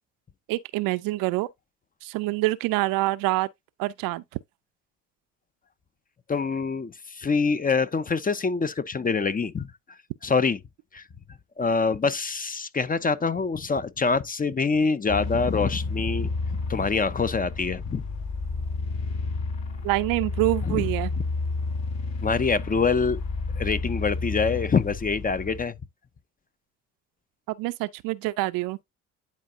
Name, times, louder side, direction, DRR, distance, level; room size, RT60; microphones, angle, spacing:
voice 1, 0.5-1.5 2.0-3.5 3.8-4.2 19.8-21.1 27.6-28.8, right 19 dB, 65° right, 0.7 m, -26 dB
voice 2, 6.3-9.7 10.2-10.6 10.9-11.0 11.6-16.3 16.7-18.0 20.6-20.8 22.2-23.2 23.6-25.7, left 4 dB, 25° left, 0.8 m, -25 dB
sound 1, 15.1-25.7, left 3 dB, 50° left, 4.2 m, -31 dB
10.5 x 4.2 x 2.6 m
hypercardioid pair, 60°, 36 cm